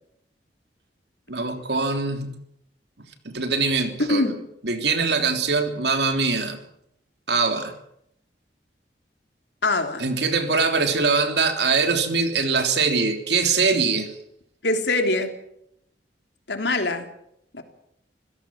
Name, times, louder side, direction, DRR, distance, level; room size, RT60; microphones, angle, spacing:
voice 1, 1.3-2.4 3.2-4.3 4.6-6.6 7.3-7.7 10.0-14.1, right 4 dB, 70° right, 6 dB, 3.2 m, -22 dB
voice 2, 4.1-4.4 9.6-10.0 14.6-15.3 16.5-17.1 17.5-17.6, left 2 dB, 75° left, 6 dB, 3.4 m, -23 dB
26.5 x 16.0 x 7.5 m, 0.76 s
head